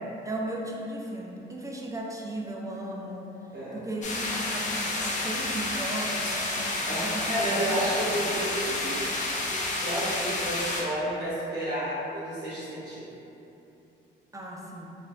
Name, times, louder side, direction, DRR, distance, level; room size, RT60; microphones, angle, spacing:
voice 1, 0.2-3.3 3.7-6.6 6.9-8.1 14.3-14.9, right 1 dB, 15° right, -2 dB, 0.4 m, -36 dB
sound 1, 4.0-10.8, left 2 dB, 40° left, 0.6 m, -30 dB
voice 2, 6.8-9.1 9.8-13.1, equal, 50° right, -11 dB, 1.1 m, -31 dB
4.0 x 2.6 x 2.3 m, 2.9 s
cardioid pair, 90°, 20 cm